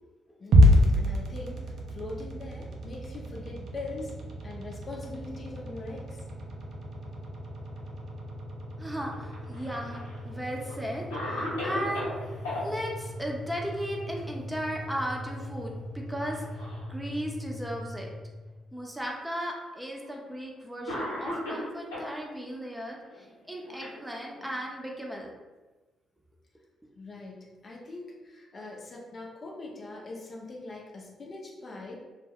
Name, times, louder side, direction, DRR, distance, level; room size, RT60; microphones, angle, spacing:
voice 1, 0.4-1.6 1.9-6.2 27.0-32.0, left 2 dB, 45° left, -2 dB, 0.6 m, -42 dB
sound 1, 0.5-18.7, equal, 65° right, 0.4 m, -30 dB
voice 2, 8.8-18.1 18.7-25.3, equal, 10° right, -1 dB, 0.6 m, -36 dB
Cough, 9.3-10.2 10.7-10.8 11.1-12.6 14.5-14.9 15.3-15.4 16.2-16.9 17.7-17.8 18.8-18.9 20.0-20.2 20.9-22.1 23.1-24.5, left 1 dB, 90° left, 0.8 m, -36 dB
2.3 x 2.1 x 3.4 m, 1.2 s
hypercardioid pair, 45°, 0 cm